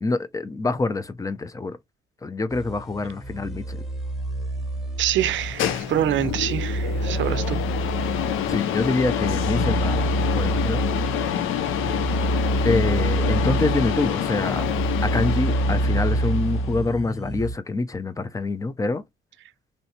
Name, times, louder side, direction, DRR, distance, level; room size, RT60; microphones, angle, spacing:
voice 1, 0.0-1.8 2.2-3.8 8.5-10.8 12.6-14.6 15.0-19.0, left 3 dB, 15° left, 0.5 m, -26 dB
sound 1, 2.5-17.5, right 2 dB, ahead, 1.2 m, -27 dB
voice 2, 5.0-7.6, right 12 dB, 70° right, 0.5 m, -25 dB
sound 2, 5.2-16.8, left 10 dB, 85° left, 0.5 m, -27 dB
3.2 x 2.7 x 2.6 m
cardioid pair, 90°, 20 cm